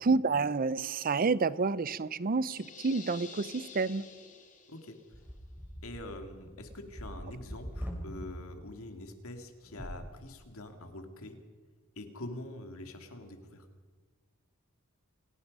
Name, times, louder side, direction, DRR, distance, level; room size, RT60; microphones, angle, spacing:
voice 1, 0.0-4.1, right 4 dB, 40° right, 0.6 m, -29 dB
sound 1, 2.5-5.1, left 5 dB, 35° left, 3.4 m, -49 dB
sound 2, 5.1-8.3 9.6-10.0, equal, 10° right, 4.0 m, -43 dB
voice 2, 5.8-11.4 12.0-13.7, left 1 dB, 65° left, 2.6 m, -45 dB
28.5 x 17.0 x 5.5 m
head